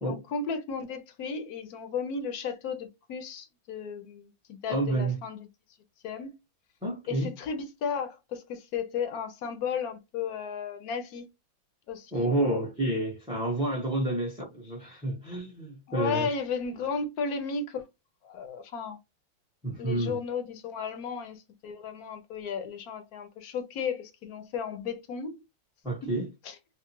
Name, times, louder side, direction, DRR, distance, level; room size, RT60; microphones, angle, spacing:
voice 1, 0.0-5.5 6.0-6.3 7.1-11.3 11.9-12.6 15.9-17.8 18.2-19.0 19.8-25.4 26.4-26.6, left 5 dB, 65° left, 0.9 m, -34 dB
voice 2, 4.7-5.2 6.8-7.3 12.1-16.3 19.6-20.2 25.8-26.3, right 2 dB, 5° right, 0.4 m, -29 dB
3.5 x 2.1 x 2.8 m
omnidirectional pair, 2.1 m